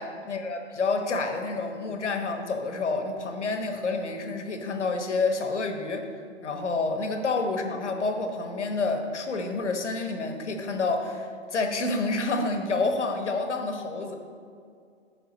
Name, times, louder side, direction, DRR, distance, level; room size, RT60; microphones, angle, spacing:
voice 1, 0.0-6.1 6.4-14.2, left 3 dB, 85° left, 5 dB, 1.1 m, -28 dB
11.0 x 4.0 x 4.1 m, 2.3 s
hypercardioid pair, 140°, 34 cm